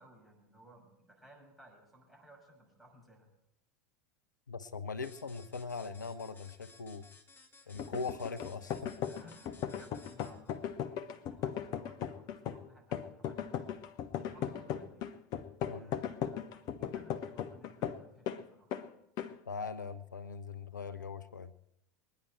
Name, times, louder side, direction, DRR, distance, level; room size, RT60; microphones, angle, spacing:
voice 1, 0.0-3.3 9.1-13.8 14.3-15.1 15.6-18.8, right 1 dB, ahead, -2 dB, 6.2 m, -59 dB
voice 2, 4.5-7.1 7.7-9.0 15.7-15.9 19.5-21.5, left 4 dB, 85° left, 12 dB, 0.6 m, -41 dB
sound 1, 5.0-10.6, left 3 dB, 20° left, 1.7 m, -59 dB
sound 2, 7.8-18.4 18.7-18.9 19.2-19.4, left 9 dB, 45° left, 0.8 m, -38 dB
22.5 x 10.5 x 4.5 m, 0.83 s
figure-of-eight pair, 80°, 10 cm